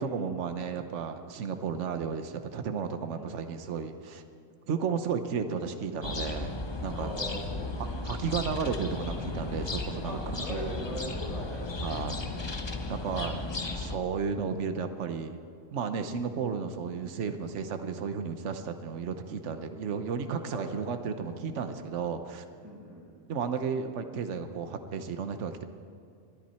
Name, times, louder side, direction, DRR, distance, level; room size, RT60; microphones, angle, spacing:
voice 1, 0.0-4.2 4.7-7.1 8.0-10.1 10.5-10.7 11.8-12.2 12.9-13.4 13.7-15.4 15.7-22.4 23.3-25.6, right 6 dB, 70° right, 8 dB, 1.2 m, -33 dB
sound 1, 6.0-14.0, left 2 dB, 25° left, 0.7 m, -35 dB
voice 2, 7.0-7.7 10.0-11.7 12.1-12.3 12.6-13.3 20.5-20.9 22.6-23.1, equal, 30° right, -4 dB, 5.0 m, -41 dB
23.0 x 10.5 x 4.3 m, 2.4 s
omnidirectional pair, 1.3 m